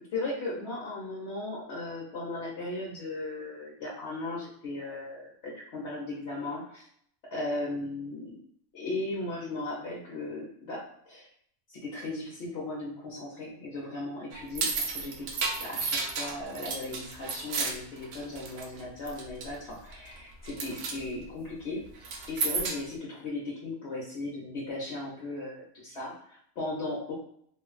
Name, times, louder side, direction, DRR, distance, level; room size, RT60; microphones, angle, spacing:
voice 1, 0.1-6.9 7.3-8.3 8.7-10.8 11.1-11.3 11.8-21.8 22.3-27.1, left 2 dB, 60° left, -6 dB, 0.9 m, -37 dB
sound 1, 14.3-18.8 19.1-19.5 19.9-20.2 20.5-21.0 22.0-22.9, right 4 dB, 75° right, 1.0 m, -32 dB
3.1 x 2.2 x 2.3 m, 0.66 s
omnidirectional pair, 1.4 m